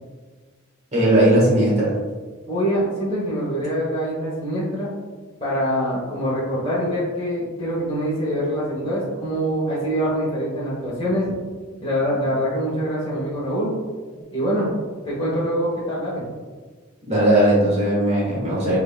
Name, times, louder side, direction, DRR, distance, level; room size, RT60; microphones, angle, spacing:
voice 1, 0.9-1.9 17.1-18.8, right 1 dB, 30° right, -6 dB, 1.4 m, -18 dB
voice 2, 2.5-4.9 5.4-11.3 11.8-13.8 14.3-14.7 15.0-16.2, equal, 25° left, -8 dB, 1.1 m, -24 dB
6.0 x 3.5 x 2.3 m, 1.4 s
head